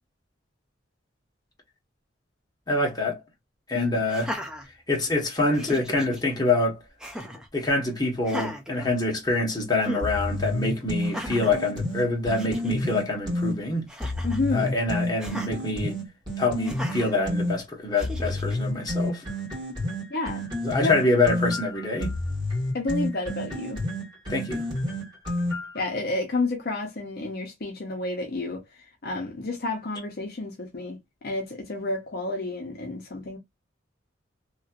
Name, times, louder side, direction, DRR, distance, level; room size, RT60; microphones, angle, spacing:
voice 1, 2.7-3.2 3.7-4.3 4.9-6.8 7.5-13.8 14.5-16.0 16.4-19.2 20.6-22.2 24.3-24.6, left 2 dB, 20° left, 1.2 m, -25 dB
Laughter, 4.1-5.2 5.5-6.2 7.0-7.5 8.2-9.4 9.8-10.1 11.0-11.6 12.1-12.2 12.4-12.7 13.9-14.5 15.2-15.5 16.6-17.1 18.0-18.6, equal, 5° right, 0.5 m, -36 dB
sound 1, 10.0-13.6 14.0-17.6 18.0-25.8, left 1 dB, 25° right, 1.7 m, -29 dB
voice 2, 14.2-14.8 20.1-20.4 20.8-20.9 22.7-23.8 25.7-28.6 29.0-31.0 31.2-33.4, left 2 dB, 55° left, 0.7 m, -30 dB
3.1 x 2.8 x 2.4 m
head